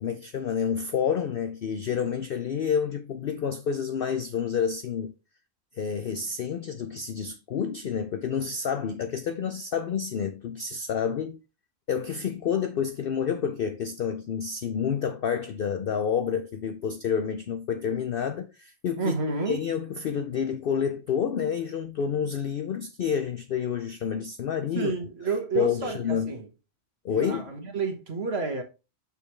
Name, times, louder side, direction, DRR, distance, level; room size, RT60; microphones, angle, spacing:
voice 1, 0.0-5.1 5.8-11.4 11.9-19.1 19.5-24.9 25.5-26.3 27.0-27.5, left 7 dB, 65° left, 0.5 m, -29 dB
voice 2, 19.0-19.6 24.7-26.5 27.1-28.6, right 4 dB, 50° right, 1.6 m, -30 dB
6.5 x 5.4 x 3.1 m
omnidirectional pair, 1.4 m